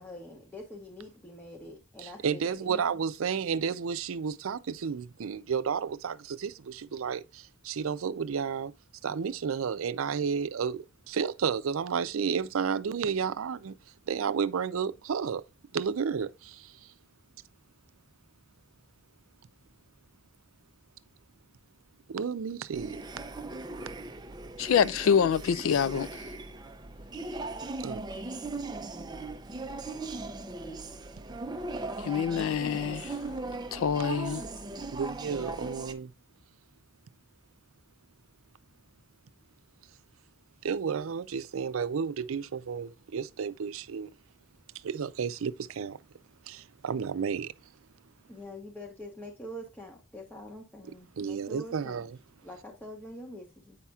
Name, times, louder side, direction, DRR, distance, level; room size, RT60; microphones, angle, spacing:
voice 1, 0.0-3.0 48.3-52.0 52.4-53.8, left 1 dB, 10° left, 0.9 m, -45 dB
voice 2, 2.0-8.7 9.0-13.7 14.1-15.4 15.7-16.7 22.1-23.0 27.8-28.0 34.9-36.1 40.6-44.1 44.8-46.0 46.5-47.5 51.2-52.2, right 6 dB, 90° right, 0.5 m, -32 dB
sound 1, 22.7-35.9, right 2 dB, 20° right, 0.5 m, -38 dB
voice 3, 24.6-26.1 32.0-33.1 33.7-34.4, left 7 dB, 85° left, 0.4 m, -26 dB
8.3 x 5.6 x 2.3 m
head